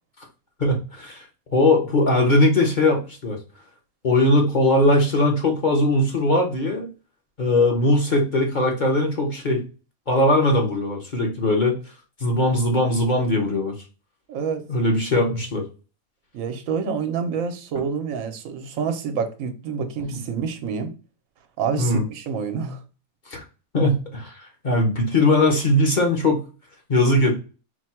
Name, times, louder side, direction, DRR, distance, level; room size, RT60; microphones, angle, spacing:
voice 1, 0.6-1.2 1.5-3.4 4.0-6.9 7.4-9.6 10.1-11.8 12.2-13.7 14.7-15.7 20.1-20.2 21.8-22.0 23.3-23.4 23.7-26.4 26.9-27.4, left 1 dB, 40° left, 0.9 m, -20 dB
voice 2, 14.3-14.6 16.3-20.9 21.6-22.8, right 6 dB, 70° right, 1.1 m, -27 dB
4.6 x 2.2 x 4.3 m
omnidirectional pair, 1.5 m